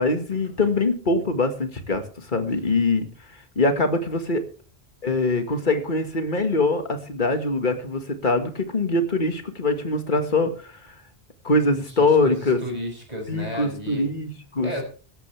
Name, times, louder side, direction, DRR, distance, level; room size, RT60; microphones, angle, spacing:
voice 1, 0.0-3.1 3.6-4.4 5.0-10.7 11.4-12.6 13.3-14.8, left 2 dB, 50° left, 7 dB, 2.0 m, -23 dB
voice 2, 12.0-14.1 14.6-14.8, equal, 40° right, 2 dB, 6.2 m, -33 dB
16.5 x 14.5 x 3.4 m, 0.38 s
omnidirectional pair, 1.1 m